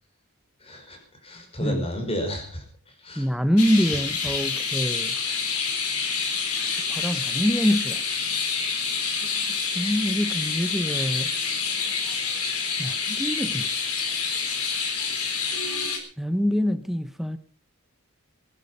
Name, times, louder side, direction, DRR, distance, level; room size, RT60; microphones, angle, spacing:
voice 1, 0.6-3.3, equal, 25° left, 5.2 m, -33 dB
voice 2, 3.2-5.1 6.9-8.0 9.3-11.3 12.8-13.7 16.2-17.4, equal, ahead, 0.9 m, -25 dB
sound 1, 3.6-16.0, left 5 dB, 85° left, 4.3 m, -27 dB
21.0 x 11.5 x 5.4 m
head